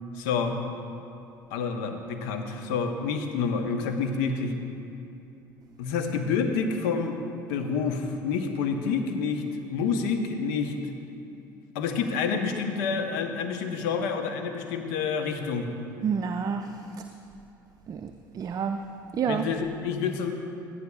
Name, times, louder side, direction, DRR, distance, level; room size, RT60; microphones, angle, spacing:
voice 1, 0.2-0.6 1.5-4.5 5.8-7.2 7.5-9.4 9.7-10.7 11.7-15.7 19.3-20.3, left 5 dB, 70° left, 6 dB, 0.9 m, -28 dB
voice 2, 16.0-16.8 17.9-18.8 19.1-19.5, right 7 dB, 35° right, 6 dB, 0.4 m, -29 dB
17.0 x 11.5 x 2.3 m, 2.7 s
figure-of-eight pair, 60°, 11 cm